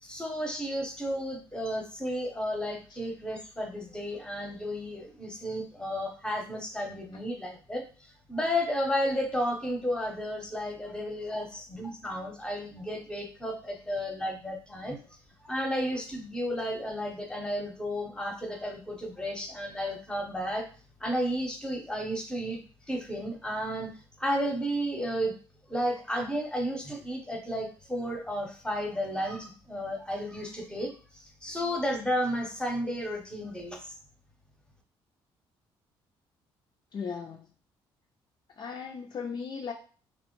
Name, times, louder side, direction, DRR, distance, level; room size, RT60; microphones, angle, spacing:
voice 1, 0.0-15.0 15.4-20.6 21.0-25.3 25.7-34.0, equal, 10° left, 2 dB, 0.8 m, -33 dB
voice 2, 36.9-37.5 38.6-39.7, left 6 dB, 40° left, 2 dB, 0.4 m, -37 dB
2.8 x 2.1 x 3.0 m, 0.39 s
supercardioid pair, 70°, 10 cm